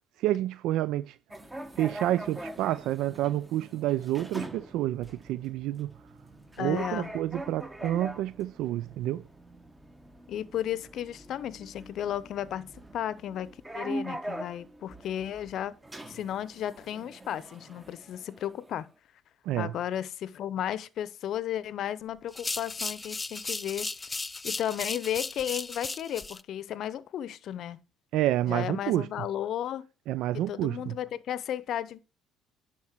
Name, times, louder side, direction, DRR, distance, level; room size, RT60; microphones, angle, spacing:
voice 1, 0.2-1.2 1.8-5.9 6.6-9.2 19.5-19.7 28.1-29.1 30.1-30.9, right 14 dB, 70° right, 0.3 m, -29 dB
sound 1, 1.3-18.8, right 1 dB, 10° right, 1.2 m, -43 dB
voice 2, 6.6-7.1 10.3-15.7 16.1-18.9 19.6-23.9 24.4-27.8 28.5-29.9 30.3-32.0, left 10 dB, 60° left, 0.7 m, -34 dB
sound 2, 22.3-26.4, left 3 dB, 20° left, 0.3 m, -36 dB
10.5 x 4.3 x 4.5 m
supercardioid pair, 85°, 0 cm